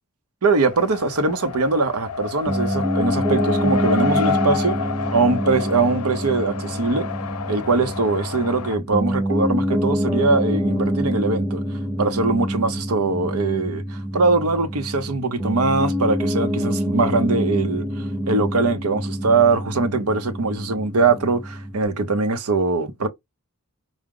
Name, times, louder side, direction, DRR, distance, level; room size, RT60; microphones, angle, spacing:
voice 1, 0.4-4.8 5.1-7.1 7.5-11.6 12.0-23.1, right 3 dB, 80° right, 0.7 m, -22 dB
Race car auto racing, 0.6-8.8, left 5 dB, 80° left, 0.5 m, -29 dB
Piano, 2.5-21.9, equal, 15° right, 0.8 m, -26 dB
4.8 x 2.1 x 3.7 m
head